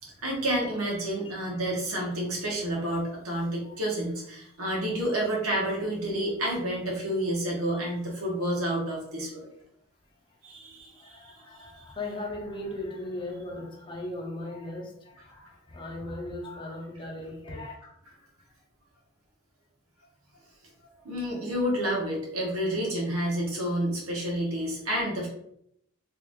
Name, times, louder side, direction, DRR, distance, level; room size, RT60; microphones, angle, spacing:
voice 1, 0.2-9.5 10.4-11.7 21.0-25.3, right 1 dB, 90° right, -2 dB, 1.3 m, -29 dB
voice 2, 10.9-17.7, left 1 dB, 25° left, -1 dB, 0.8 m, -38 dB
3.4 x 2.6 x 3.5 m, 0.74 s
head